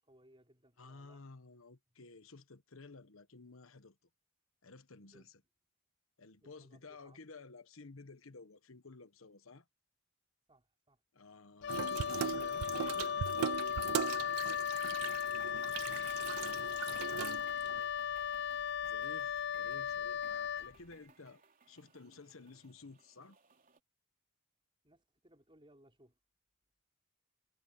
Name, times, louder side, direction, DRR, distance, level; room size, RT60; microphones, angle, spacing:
voice 1, 0.0-1.3 5.1-5.3 6.4-7.2 10.5-11.0 16.5-18.3 24.8-26.2, right 1 dB, 25° right, 4.6 m, -66 dB
voice 2, 0.8-4.0 4.6-5.4 6.2-9.7 11.1-13.2 18.8-23.4, left 3 dB, 75° left, 1.2 m, -54 dB
Wind instrument woodwind instrument, 11.6-20.7, left 8 dB, 55° left, 0.4 m, -36 dB
Water tap faucet / Sink (filling or washing), 11.7-17.8, right 9 dB, 85° right, 0.3 m, -39 dB
sound 1, 14.3-23.8, right 6 dB, 40° right, 3.8 m, -64 dB
head